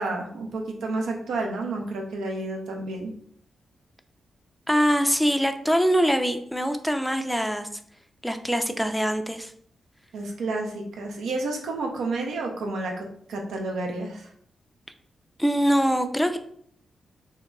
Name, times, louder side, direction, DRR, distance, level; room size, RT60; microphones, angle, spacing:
voice 1, 0.0-3.1 10.1-14.3, right 2 dB, 80° right, 1 dB, 0.4 m, -30 dB
voice 2, 4.7-7.7 8.2-9.5 15.4-16.4, equal, 5° left, 7 dB, 0.3 m, -23 dB
2.8 x 2.2 x 2.3 m, 0.64 s
supercardioid pair, 40°, 0 cm